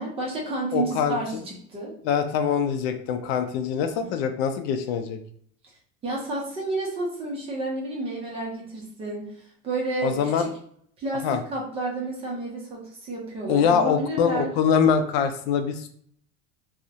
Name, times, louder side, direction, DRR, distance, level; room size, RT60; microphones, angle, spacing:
voice 1, 0.0-1.9 6.0-9.4 9.6-10.5 11.0-14.5, right 2 dB, 20° right, -3 dB, 0.5 m, -30 dB
voice 2, 0.7-1.2 2.0-5.2 10.0-10.5 11.2-11.4 13.5-15.9, left 7 dB, 70° left, 8 dB, 0.5 m, -23 dB
2.3 x 2.0 x 2.7 m, 0.62 s
cardioid pair, 170°, 32 cm